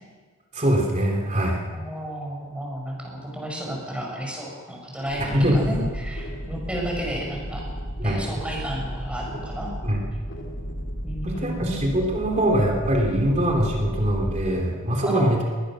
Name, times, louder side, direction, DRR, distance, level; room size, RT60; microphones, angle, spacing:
voice 1, 0.5-1.6 5.2-5.9 6.7-6.8 8.0-8.2 9.8-10.0 11.2-15.4, equal, 35° right, 0 dB, 3.1 m, -23 dB
voice 2, 1.7-7.7 8.0-9.7 11.0-11.9 15.0-15.3, equal, 5° right, -1 dB, 6.2 m, -32 dB
sound 1, 5.1-14.5, equal, 65° left, 2.5 m, -34 dB
22.0 x 19.5 x 6.3 m, 1.5 s
head